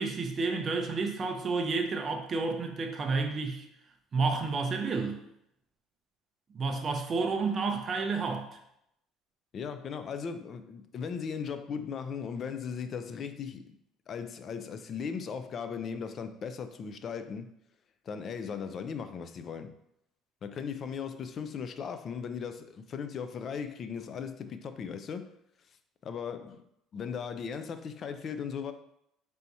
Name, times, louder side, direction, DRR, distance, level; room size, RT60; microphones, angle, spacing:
voice 1, 0.0-3.7 4.1-5.2 6.5-8.5, right 4 dB, 30° right, 0.5 m, -30 dB
voice 2, 9.5-13.8 14.1-17.5 18.1-19.8 20.4-25.3 26.0-26.6 26.9-28.7, left 6 dB, 35° left, 0.3 m, -37 dB
3.4 x 2.8 x 4.1 m
cardioid pair, 145°, 0 cm